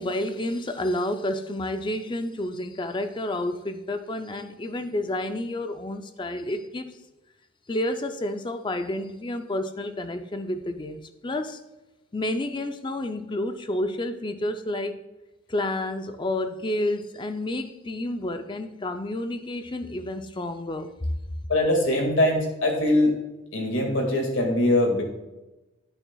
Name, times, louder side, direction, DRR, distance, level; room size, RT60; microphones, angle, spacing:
voice 1, 0.0-7.0 7.7-11.6 12.1-15.0 15.5-21.1, left 1 dB, 20° left, 0.4 m, -30 dB
voice 2, 21.5-23.1 23.5-25.0, left 1 dB, 65° left, 2.0 m, -22 dB
9.8 x 8.8 x 2.3 m
head